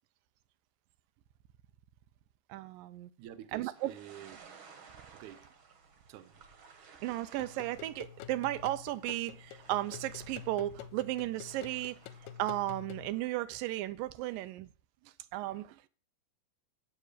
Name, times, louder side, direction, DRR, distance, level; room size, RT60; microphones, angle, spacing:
voice 1, 2.5-3.1 3.5-3.9 7.0-12.0 12.4-14.7 15.0-15.9, right 16 dB, 90° right, 2.3 m, -35 dB
voice 2, 3.2-4.4 5.1-5.5 6.1-6.4 15.0-15.1, right 11 dB, 75° right, 2.0 m, -49 dB
sound 1, 3.7-13.3, right 5 dB, 55° right, 1.5 m, -57 dB
sound 2, 7.4-13.1, left 10 dB, 85° left, 2.3 m, -48 dB
7.8 x 7.4 x 6.6 m
omnidirectional pair, 3.9 m